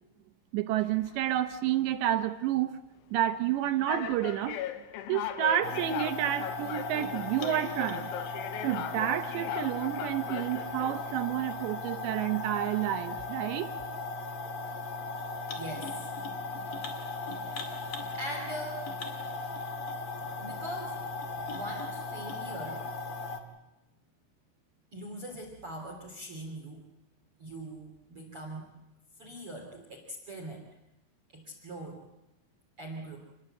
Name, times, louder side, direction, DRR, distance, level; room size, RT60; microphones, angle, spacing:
voice 1, 0.5-2.8 3.1-4.6 5.1-8.2 8.6-13.7, right 12 dB, 75° right, 9 dB, 3.0 m, -30 dB
sound 1, 0.8-1.4 2.1-2.3 3.2-3.3 3.9-11.2, left 11 dB, 90° left, 3.7 m, -39 dB
sound 2, 5.6-23.4, left 3 dB, 40° left, 2.1 m, -37 dB
voice 2, 15.6-15.9 17.3-17.6 18.1-18.8 20.4-22.8 24.9-26.8 27.4-28.7 29.2-30.6 31.4-32.0 32.8-33.2, right 1 dB, 35° right, 2 dB, 3.2 m, -41 dB
28.0 x 21.0 x 7.8 m, 0.98 s
omnidirectional pair, 5.4 m